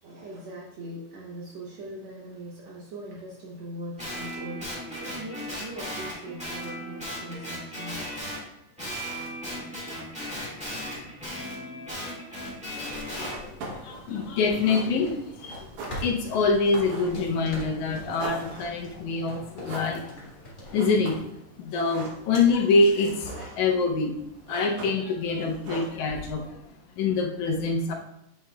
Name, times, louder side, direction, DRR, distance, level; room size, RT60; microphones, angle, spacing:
voice 1, 0.0-8.4 8.8-11.1, right 1 dB, 70° right, -4 dB, 2.1 m, -42 dB
Guitar, 4.0-8.4 8.8-13.4, equal, 5° right, 1.3 m, -36 dB
sound 1, 12.4-21.2, equal, 25° left, 1.1 m, -43 dB
voice 2, 12.7-15.7 16.0-20.2 20.7-21.2 21.6-24.2 24.5-26.6 27.0-27.9, left 3 dB, 80° left, 2 dB, 2.1 m, -25 dB
sound 2, 12.9-26.5, right 2 dB, 90° right, 2.6 m, -43 dB
8.6 x 5.4 x 2.3 m, 0.82 s
omnidirectional pair, 3.4 m